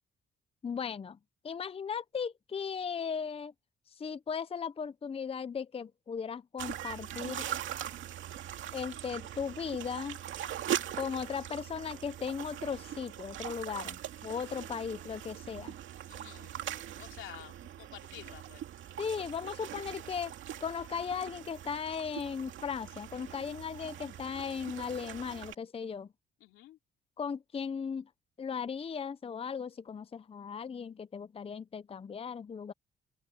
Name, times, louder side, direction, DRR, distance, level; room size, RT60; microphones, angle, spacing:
voice 1, 0.6-1.2 1.4-3.5 4.0-7.5 8.7-10.2 11.0-15.8 19.0-20.3 20.6-26.1 27.2-28.1 28.4-32.7, left 6 dB, 30° left, 0.6 m, -37 dB
sound 1, 6.6-25.5, right 11 dB, 75° right, 2.3 m, -41 dB
voice 2, 10.6-11.1 16.1-16.6 17.0-18.6 26.4-26.8, left 13 dB, 90° left, 2.9 m, -51 dB
open air
cardioid pair, 90°, 20 cm